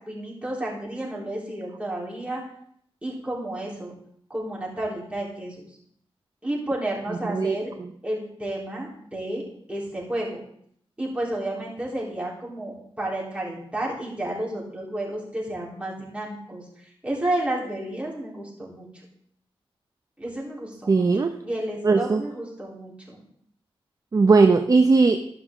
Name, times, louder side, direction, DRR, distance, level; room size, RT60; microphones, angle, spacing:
voice 1, 0.0-2.4 3.0-3.9 4.3-5.6 6.4-7.7 8.0-9.4 9.7-10.4 11.0-18.9 20.2-21.1 21.4-23.2, right 1 dB, 10° right, -5 dB, 3.6 m, -31 dB
voice 2, 7.3-7.9 20.9-21.3 21.8-22.2 24.1-25.3, right 4 dB, 35° right, 7 dB, 0.5 m, -19 dB
12.5 x 6.0 x 3.7 m, 0.67 s
cardioid pair, 80°, 10 cm